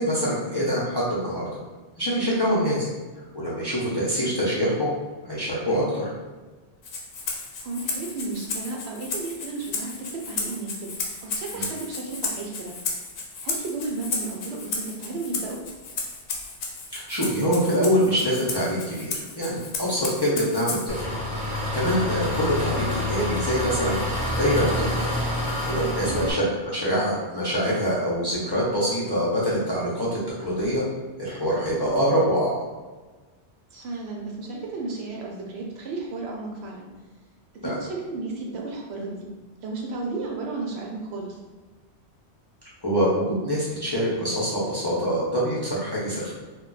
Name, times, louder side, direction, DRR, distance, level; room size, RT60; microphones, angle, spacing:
voice 1, 0.0-1.4 2.0-2.9 3.3-4.9 5.3-6.1 11.5-11.7 16.9-21.1 21.5-25.1 25.7-30.8 31.2-32.5 37.6-37.7 42.8-46.3, equal, 30° left, -8 dB, 0.5 m, -25 dB
voice 2, 2.3-2.7 7.6-10.9 11.2-12.7 13.4-15.6 20.3-20.6 26.1-26.4 31.8-31.9 33.7-36.9 37.5-39.3 39.6-41.3, right 3 dB, 70° right, -1 dB, 0.9 m, -33 dB
Rattle (instrument), 6.8-21.0, left 4 dB, 65° left, 0.8 m, -33 dB
Engine, 20.9-26.3, left 1 dB, 5° right, 1.0 m, -27 dB
2.3 x 2.2 x 3.8 m, 1.3 s
omnidirectional pair, 1.2 m